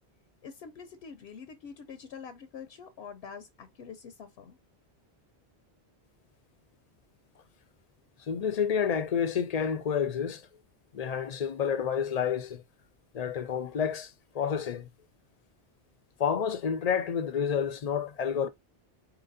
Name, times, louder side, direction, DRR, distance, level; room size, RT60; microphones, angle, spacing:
voice 1, 0.4-4.6, left 6 dB, 70° left, 0.8 m, -45 dB
voice 2, 8.3-10.4 10.9-12.6 13.1-14.9 16.2-18.5, left 7 dB, 50° left, 0.5 m, -29 dB
4.3 x 3.9 x 2.6 m
omnidirectional pair, 1.1 m